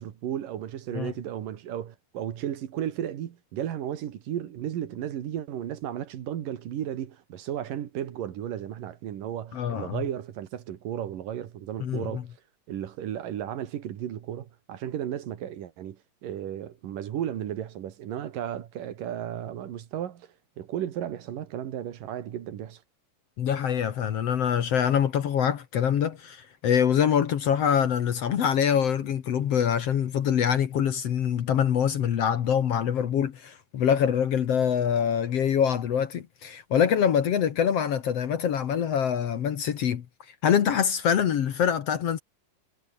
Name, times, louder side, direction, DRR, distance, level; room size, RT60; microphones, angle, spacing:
voice 1, 0.0-12.3 12.7-22.8, right 10 dB, 75° right, 3.4 m, -34 dB
voice 2, 9.5-10.0 11.8-12.2 23.4-40.1 40.4-42.2, left 8 dB, 55° left, 2.1 m, -24 dB
omnidirectional pair, 3.9 m